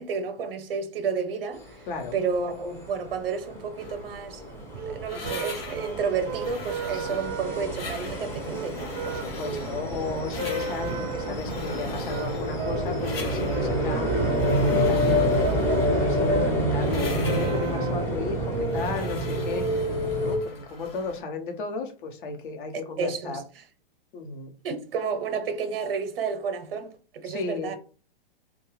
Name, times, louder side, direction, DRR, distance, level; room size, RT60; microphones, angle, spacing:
voice 1, 0.0-8.8 23.0-23.4 24.6-27.8, right 5 dB, 75° right, 0.7 m, -31 dB
sound 1, 1.7-1.8 2.1-20.4, equal, 10° left, 0.5 m, -27 dB
voice 2, 1.9-2.2 5.1-5.5 6.9-7.2 9.0-19.9 20.1-23.4 24.1-24.5 27.2-27.7, left 4 dB, 60° left, 0.8 m, -35 dB
sound 2, 3.8-21.2, left 3 dB, 85° left, 1.0 m, -43 dB
sound 3, 4.5-18.5, right 4 dB, 35° right, 0.5 m, -36 dB
2.4 x 2.2 x 3.1 m
hypercardioid pair, 120°, 29 cm